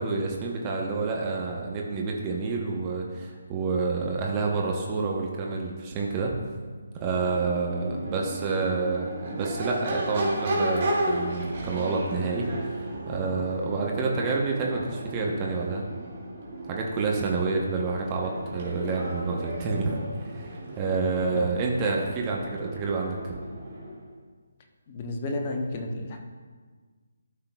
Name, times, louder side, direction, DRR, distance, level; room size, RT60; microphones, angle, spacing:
voice 1, 0.0-6.3 7.0-12.5 13.1-15.8 16.7-20.0 20.3-23.4, right 4 dB, 20° right, -1 dB, 0.9 m, -28 dB
Crowd / Race car auto racing / Accelerating revving vroom, 7.0-24.0, right 1 dB, 40° right, 2.1 m, -34 dB
voice 2, 24.9-26.2, left 2 dB, 30° left, 3 dB, 0.9 m, -32 dB
13.0 x 5.7 x 2.3 m, 1.5 s
figure-of-eight pair, 145°, 0 cm